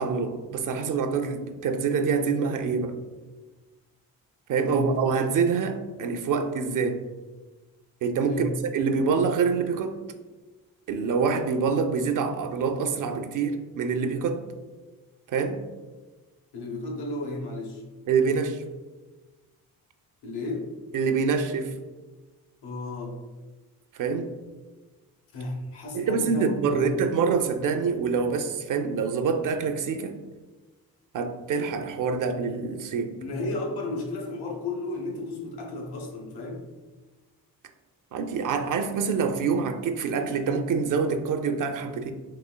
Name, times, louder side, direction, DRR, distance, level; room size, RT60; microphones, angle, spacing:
voice 1, 0.0-3.0 4.5-7.0 8.0-10.0 10.9-14.4 15.3-15.7 18.1-18.6 20.9-21.7 24.0-24.3 25.9-30.2 31.1-33.2 38.1-42.1, right 5 dB, 55° right, 7 dB, 0.5 m, -26 dB
voice 2, 16.5-17.8 20.2-20.7 22.6-23.1 25.3-26.9 33.2-36.6, left 2 dB, 85° left, 0 dB, 0.9 m, -33 dB
4.0 x 3.0 x 2.2 m, 1.2 s
cardioid pair, 85°, 38 cm